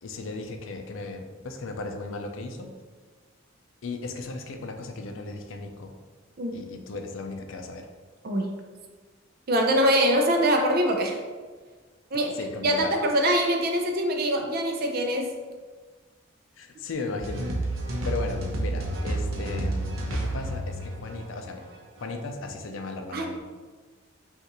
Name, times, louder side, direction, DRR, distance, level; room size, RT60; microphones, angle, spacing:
voice 1, 0.0-2.7 3.8-5.9 6.5-7.9 12.3-13.0 16.6-17.8 18.0-21.6 22.0-23.4, left 3 dB, 75° left, 4 dB, 0.5 m, -36 dB
voice 2, 8.2-8.6 9.5-11.2 12.1-12.3 12.6-15.3 23.1-23.3, equal, 50° right, 3 dB, 0.5 m, -23 dB
sound 1, 17.2-22.1, right 1 dB, 90° right, 0.7 m, -30 dB
5.3 x 2.5 x 3.0 m, 1.4 s
head